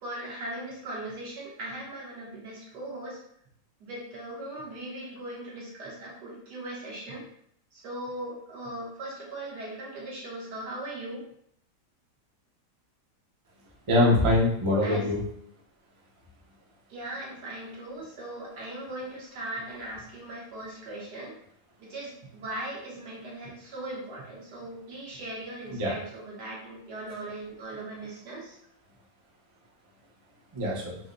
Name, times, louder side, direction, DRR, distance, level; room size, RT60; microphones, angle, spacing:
voice 1, 0.0-3.2 3.8-7.3 7.7-11.2 14.8-15.1 16.9-21.3 21.8-28.6, right 1 dB, 80° right, -4 dB, 1.6 m, -39 dB
voice 2, 13.9-15.2 25.7-26.0 30.5-31.0, left 1 dB, 40° right, -3 dB, 0.4 m, -23 dB
4.8 x 2.0 x 2.6 m, 0.69 s
omnidirectional pair, 1.8 m